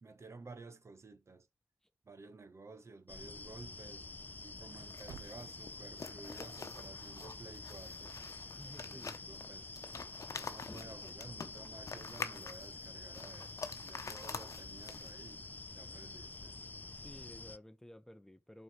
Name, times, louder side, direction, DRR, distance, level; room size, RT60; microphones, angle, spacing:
voice 1, 0.0-1.5 2.0-4.1 4.4-8.1 8.9-9.7 10.3-13.6 13.8-15.4 15.7-16.6, right 3 dB, 50° right, 1.2 m, -53 dB
sound 1, 3.1-17.6, left 3 dB, 30° left, 0.4 m, -48 dB
Thump thud, 4.2-8.3, right 7 dB, 80° right, 0.5 m, -59 dB
sound 2, 4.8-15.3, left 5 dB, 65° left, 0.9 m, -47 dB
voice 2, 8.6-9.1 16.8-18.6, equal, 10° left, 0.8 m, -54 dB
5.5 x 4.9 x 6.0 m
cardioid pair, 60°, 6 cm